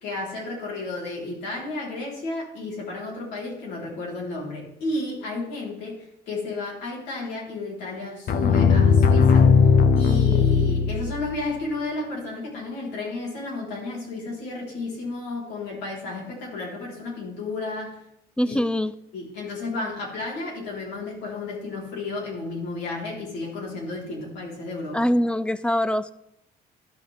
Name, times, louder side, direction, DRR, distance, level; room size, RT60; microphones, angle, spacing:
voice 1, 0.0-9.5 9.9-18.0 18.5-18.6 19.1-25.0, left 2 dB, 85° left, -3 dB, 3.8 m, -32 dB
sound 1, 8.3-11.4, left 5 dB, 60° left, 0.7 m, -18 dB
voice 2, 18.4-18.9 24.9-26.1, equal, 5° left, 15 dB, 0.4 m, -23 dB
12.5 x 6.1 x 3.4 m, 0.81 s
cardioid pair, 110°, 17 cm